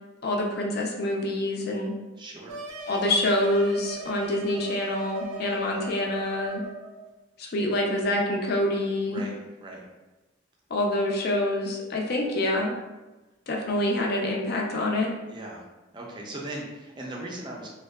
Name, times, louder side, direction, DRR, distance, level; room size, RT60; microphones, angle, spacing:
voice 1, 0.2-1.9 2.9-6.6 7.4-9.2 10.7-12.7 13.5-15.1, left 1 dB, 50° left, -1 dB, 0.4 m, -26 dB
voice 2, 2.2-2.6 9.0-9.8 15.3-15.7 15.9-17.7, right 1 dB, 25° right, -2 dB, 0.4 m, -38 dB
sound 1, 2.5-7.0, right 3 dB, 85° right, 0.4 m, -39 dB
2.6 x 2.2 x 2.2 m, 1.1 s
head